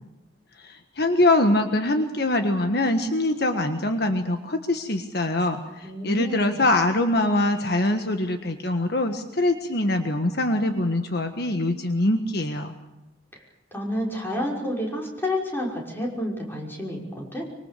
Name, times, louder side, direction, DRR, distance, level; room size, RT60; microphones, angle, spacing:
voice 1, 0.6-12.7, left 1 dB, 60° left, 6 dB, 1.5 m, -23 dB
voice 2, 5.8-6.6 13.7-17.5, left 1 dB, 10° left, -2 dB, 5.9 m, -30 dB
25.0 x 24.0 x 6.9 m, 0.96 s
head